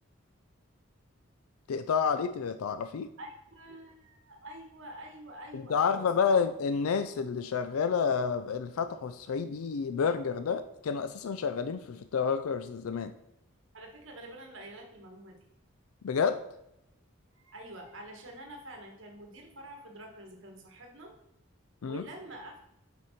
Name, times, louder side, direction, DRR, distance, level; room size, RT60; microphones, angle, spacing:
voice 1, 1.7-3.1 5.5-13.1 16.0-16.4 21.8-22.1, left 6 dB, 85° left, 10 dB, 0.4 m, -29 dB
voice 2, 3.2-6.0 13.7-15.4 17.4-21.1 21.8-22.6, right 1 dB, 65° right, 2 dB, 1.3 m, -47 dB
7.5 x 5.2 x 4.2 m, 0.82 s
head